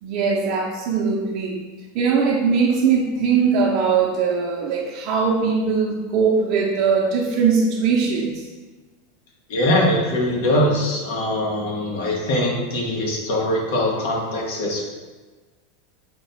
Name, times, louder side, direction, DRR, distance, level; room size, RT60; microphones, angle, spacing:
voice 1, 0.0-1.6 1.9-8.5, right 5 dB, 50° right, -4 dB, 0.6 m, -20 dB
voice 2, 9.5-14.8, left 1 dB, 65° left, -2 dB, 1.2 m, -22 dB
5.0 x 2.2 x 4.0 m, 1.3 s
supercardioid pair, 135°, 0 cm